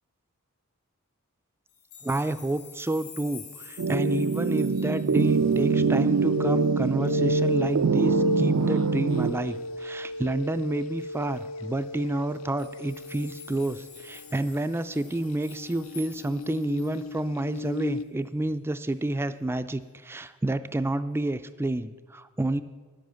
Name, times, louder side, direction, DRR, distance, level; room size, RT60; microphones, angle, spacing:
sound 1, 1.7-6.2 6.6-6.7 7.1-7.2 7.5-8.0 9.1-9.3 11.0-11.1 11.3-11.4 12.3-17.2 17.6-17.7, left 5 dB, 90° left, 2.5 m, -49 dB
voice 1, 2.0-22.6, right 1 dB, 10° right, 11 dB, 0.3 m, -29 dB
sound 2, 3.8-9.3, right 5 dB, 85° right, 0.5 m, -24 dB
sound 3, 5.2-14.7 15.3-18.0, left 1 dB, 70° left, 0.5 m, -33 dB
10.5 x 7.8 x 6.8 m, 1.4 s
head